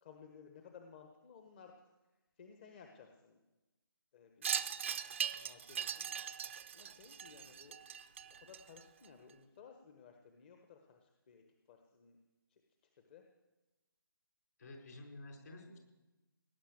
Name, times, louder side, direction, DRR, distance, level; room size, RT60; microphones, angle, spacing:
voice 1, 0.0-1.9 2.4-3.4 4.1-4.5 5.3-6.1 6.7-7.8 8.3-12.2 12.5-13.2, left 6 dB, 30° left, 4 dB, 1.2 m, -58 dB
Wind chime, 4.4-9.1, right 8 dB, 35° right, 0.6 m, -40 dB
voice 2, 14.6-15.8, left 2 dB, 50° left, 1 dB, 5.1 m, -51 dB
18.5 x 10.0 x 7.8 m, 1.1 s
figure-of-eight pair, 150°, 12 cm